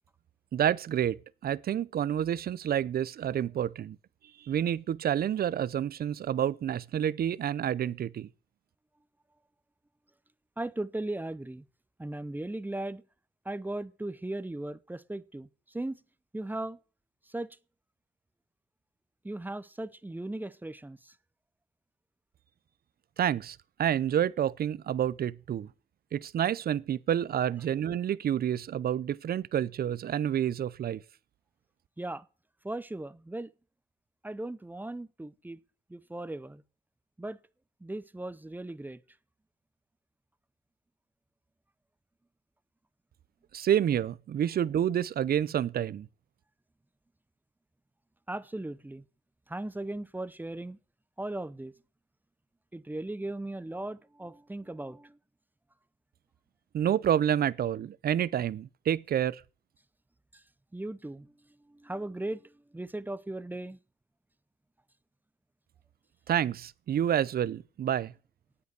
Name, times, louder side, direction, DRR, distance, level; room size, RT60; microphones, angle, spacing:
voice 1, 0.5-1.2 1.4-4.0 4.4-8.3 23.2-25.7 26.1-31.0 43.5-46.1 56.7-59.4 66.3-68.1, right 10 dB, 50° right, 0.6 m, -29 dB
voice 2, 10.6-11.6 12.0-13.0 13.4-16.0 16.3-16.8 17.3-17.6 19.2-21.1 32.0-32.3 32.6-33.5 34.2-35.6 35.9-36.6 37.2-37.4 37.8-39.0 48.3-49.0 49.5-50.8 51.2-51.7 52.7-55.2 60.3-60.4 60.7-61.3 61.6-63.8, right 2 dB, 10° right, 0.6 m, -37 dB
9.1 x 8.3 x 8.1 m
cardioid pair, 90°, 20 cm